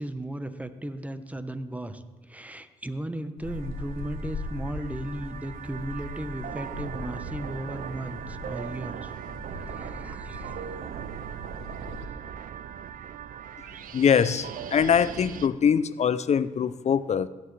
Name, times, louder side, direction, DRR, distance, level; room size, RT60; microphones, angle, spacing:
voice 1, 0.0-9.1 9.5-10.5, right 1 dB, 10° right, 10 dB, 0.9 m, -36 dB
sound 1, 3.4-12.1, left 3 dB, 85° left, 1.4 m, -40 dB
sound 2, 3.5-15.5, right 9 dB, 70° right, 0.5 m, -39 dB
voice 2, 13.7-17.3, left 7 dB, 50° left, 16 dB, 0.5 m, -23 dB
16.0 x 7.9 x 3.3 m, 1.1 s
supercardioid pair, 50°, 15 cm